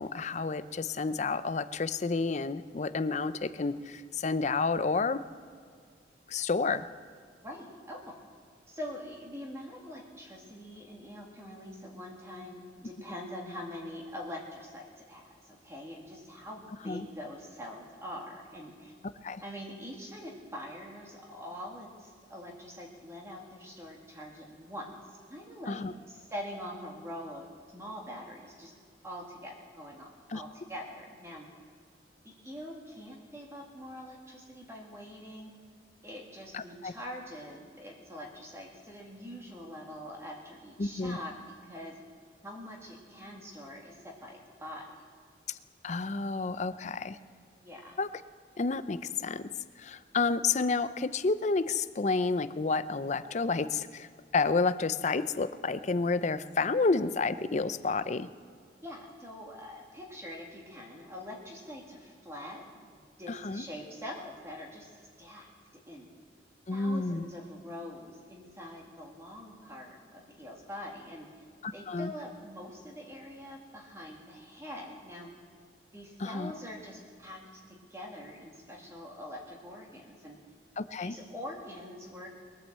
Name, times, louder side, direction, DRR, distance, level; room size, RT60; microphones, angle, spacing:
voice 1, 0.0-5.2 6.3-6.8 16.9-17.1 19.2-19.4 25.7-25.9 30.3-30.4 36.5-36.9 40.8-41.2 45.5-45.6 45.8-47.2 48.0-48.1 48.6-49.5 49.8-54.1 54.3-58.3 63.3-63.6 66.7-67.3 71.6-72.1 76.2-76.5 80.8-81.2, left 4 dB, 40° left, 13 dB, 0.5 m, -30 dB
voice 2, 7.4-8.2 8.7-18.9 19.4-25.0 25.3-27.4 27.7-28.7 29.0-31.5 32.2-35.5 36.0-42.0 42.4-44.9 47.6-48.0 58.8-65.5 65.9-66.1 66.7-71.3 71.7-75.3 75.9-80.4 81.0-82.3, left 1 dB, 15° right, -2 dB, 2.1 m, -44 dB
21.5 x 8.7 x 7.5 m, 2.2 s
head